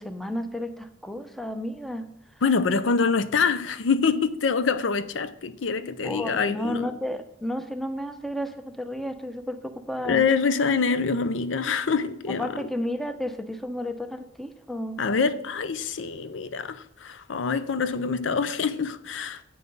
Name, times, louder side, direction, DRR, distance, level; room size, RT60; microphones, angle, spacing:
voice 1, 0.0-2.1 6.0-10.2 12.3-15.0, left 1 dB, ahead, 0.6 m, -32 dB
voice 2, 2.4-6.9 10.0-12.5 15.0-19.4, left 5 dB, 80° left, 0.5 m, -25 dB
8.4 x 5.8 x 5.3 m
head